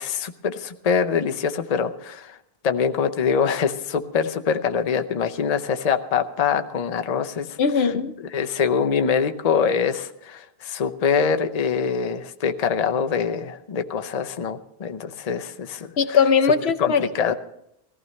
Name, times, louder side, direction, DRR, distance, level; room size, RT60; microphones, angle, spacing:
voice 1, 0.0-2.4 2.6-7.6 8.3-16.2 16.8-17.3, left 6 dB, 45° left, 0.7 m, -24 dB
voice 2, 7.6-8.2 16.0-17.3, left 6 dB, 80° left, 1.0 m, -20 dB
20.0 x 15.0 x 3.2 m
omnidirectional pair, 1.1 m